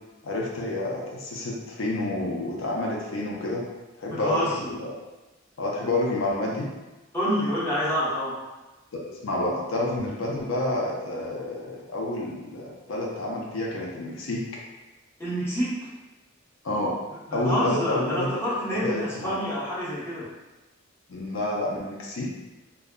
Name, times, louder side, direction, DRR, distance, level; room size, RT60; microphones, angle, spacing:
voice 1, 0.2-3.6 4.0-5.0 5.6-6.7 8.9-14.4 16.6-16.9 17.3-18.3 18.7-19.4 21.1-22.3, left 1 dB, 80° left, -3 dB, 0.5 m, -29 dB
voice 2, 4.1-4.7 7.1-8.3 15.2-15.8 17.3-20.3, equal, 15° left, -10 dB, 0.8 m, -27 dB
2.2 x 2.0 x 3.6 m, 1.1 s
head